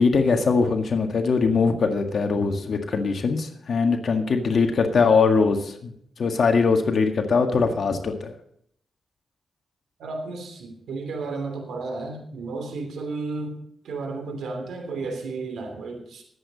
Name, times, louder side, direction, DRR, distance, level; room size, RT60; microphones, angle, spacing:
voice 1, 0.0-8.3, left 4 dB, 60° left, 4 dB, 1.8 m, -21 dB
voice 2, 10.0-16.2, right 3 dB, 90° right, 4 dB, 3.0 m, -33 dB
21.0 x 8.4 x 4.1 m, 0.68 s
cardioid pair, 90°, 0 cm